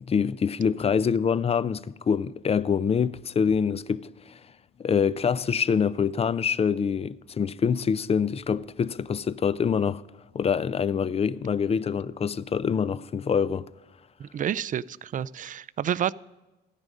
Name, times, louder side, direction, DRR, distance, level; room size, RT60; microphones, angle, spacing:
voice 1, 0.0-4.4 4.8-10.0 10.3-13.7, left 6 dB, 30° left, 0.4 m, -25 dB
voice 2, 14.2-16.1, right 9 dB, 40° right, 0.4 m, -29 dB
14.0 x 9.8 x 5.2 m
cardioid pair, 90°, 20 cm